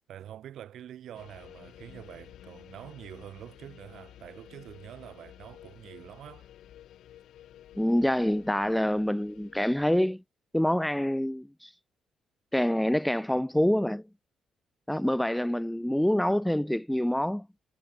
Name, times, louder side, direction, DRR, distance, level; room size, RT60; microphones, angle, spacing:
voice 1, 0.1-6.5, right 11 dB, 70° right, 2.9 m, -46 dB
sound 1, 1.1-9.9, left 12 dB, 75° left, 3.8 m, -52 dB
voice 2, 7.8-10.2 10.5-11.7 12.5-14.0 14.9-17.5, left 1 dB, 5° left, 0.7 m, -26 dB
cardioid pair, 90°, 0 cm